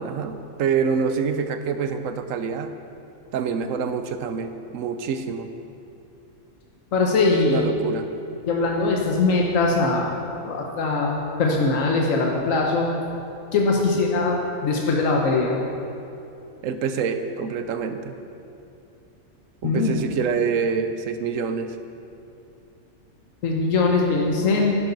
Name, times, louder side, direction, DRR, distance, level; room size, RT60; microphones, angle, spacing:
voice 1, 0.0-2.7 3.3-5.5 7.4-8.1 16.6-18.2 19.6-21.8, right 6 dB, 85° right, 9 dB, 1.1 m, -26 dB
voice 2, 6.9-7.7 8.5-12.9 13.5-15.6 19.6-20.1 23.4-24.7, left 3 dB, 90° left, -1 dB, 1.3 m, -21 dB
11.0 x 10.5 x 4.0 m, 2.8 s
omnidirectional pair, 1.3 m